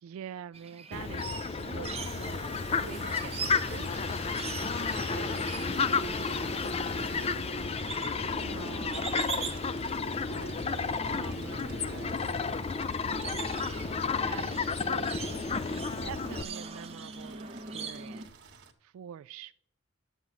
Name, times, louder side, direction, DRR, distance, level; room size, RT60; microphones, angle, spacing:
voice 1, 0.0-4.1 8.4-9.9 10.3-12.3 13.6-15.6 16.0-19.5, right 8 dB, 90° right, 0.3 m, -46 dB
sound 1, 0.5-18.3, right 5 dB, 30° right, 1.1 m, -43 dB
Fowl, 0.9-16.4, left 4 dB, 30° left, 0.4 m, -32 dB
sound 2, 2.0-18.7, right 5 dB, 55° right, 1.4 m, -51 dB
voice 2, 4.8-7.9 14.6-14.9, equal, 60° left, 4.1 m, -50 dB
9.7 x 7.2 x 6.8 m
head